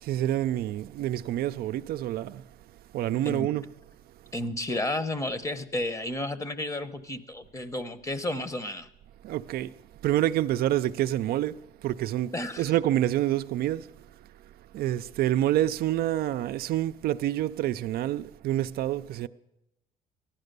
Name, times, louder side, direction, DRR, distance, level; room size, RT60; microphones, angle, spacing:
voice 1, 0.0-2.4 2.9-3.6 9.2-9.7 10.0-13.9 14.7-19.3, right 13 dB, 65° right, 0.4 m, -27 dB
voice 2, 4.3-8.9 12.3-12.7, left 1 dB, 20° left, 0.9 m, -32 dB
15.0 x 11.5 x 6.7 m
cardioid pair, 110°, 17 cm